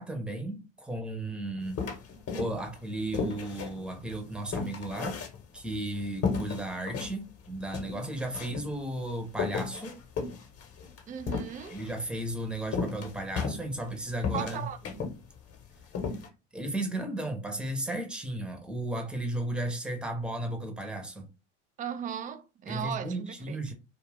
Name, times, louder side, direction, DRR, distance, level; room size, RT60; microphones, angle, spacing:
voice 1, 0.0-1.9 2.3-5.2 5.5-10.0 11.7-14.7 16.5-21.3 22.7-23.7, right 1 dB, 5° right, 0.8 m, -34 dB
sound 1, 1.8-2.8 3.1-5.8 6.2-7.1 7.5-7.6 7.7-8.7 9.3-11.9 12.7-13.9 14.2-15.2 15.5-15.6 15.9-16.3, left 5 dB, 40° left, 1.1 m, -33 dB
voice 2, 11.1-11.8 14.3-15.1 21.8-23.6, right 8 dB, 25° right, 0.4 m, -37 dB
2.4 x 2.4 x 3.4 m
hypercardioid pair, 85°, 36 cm